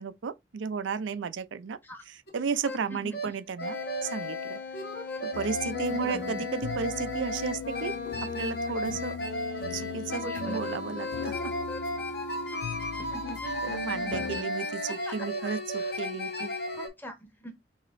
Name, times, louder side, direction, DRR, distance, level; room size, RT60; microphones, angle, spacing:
voice 1, 0.0-1.8 2.3-3.8 4.0-4.6 5.2-7.9 8.4-9.1 9.7-11.3 13.6-16.5, right 5 dB, 90° right, 0.5 m, -33 dB
sound 1, 2.3-2.4 2.6-2.8 3.1-3.3 3.6-16.9, left 1 dB, 60° left, 1.4 m, -34 dB
voice 2, 2.9-3.4 5.9-6.5 8.8-9.0 10.2-10.8 13.0-15.9 16.4-17.5, right 1 dB, 10° left, 1.0 m, -44 dB
sound 2, 5.3-14.4, left 7 dB, 90° left, 0.3 m, -39 dB
6.2 x 2.8 x 2.5 m
head